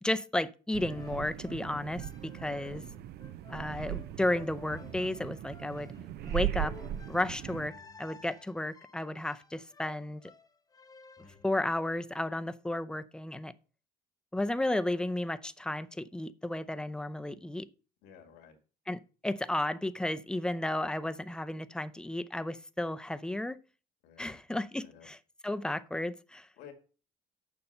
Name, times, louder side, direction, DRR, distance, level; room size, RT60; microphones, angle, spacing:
voice 1, 0.0-2.8 3.5-5.9 6.2-6.7 7.1-7.7 8.0-10.2 11.4-13.5 14.3-17.7 18.9-23.6 24.2-25.2 25.4-26.5, left 1 dB, 5° left, 0.5 m, -33 dB
sound 1, 0.7-7.7, right 12 dB, 70° right, 0.6 m, -39 dB
sound 2, 0.9-11.5, left 4 dB, 20° left, 0.9 m, -53 dB
voice 2, 2.5-2.8 18.0-18.6 24.0-24.4 24.8-25.1 26.6-26.7, left 7 dB, 90° left, 2.1 m, -52 dB
7.1 x 5.4 x 6.5 m
cardioid pair, 110°, 17 cm